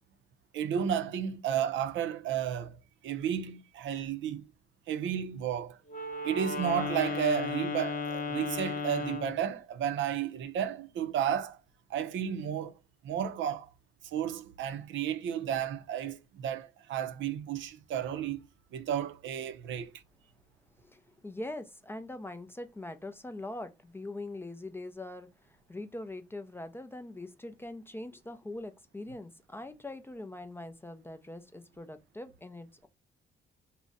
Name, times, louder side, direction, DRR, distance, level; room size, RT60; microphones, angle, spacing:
voice 1, 0.5-2.8 3.0-4.4 4.9-5.8 6.2-11.6 11.9-12.7 13.0-13.7 14.0-18.4 18.7-19.9, right 9 dB, 70° right, 0.5 m, -32 dB
Wind instrument woodwind instrument, 5.9-9.4, left 4 dB, 40° left, 0.7 m, -35 dB
voice 2, 20.8-32.9, left 2 dB, 10° left, 0.3 m, -42 dB
2.5 x 2.1 x 3.8 m
cardioid pair, 90°, 20 cm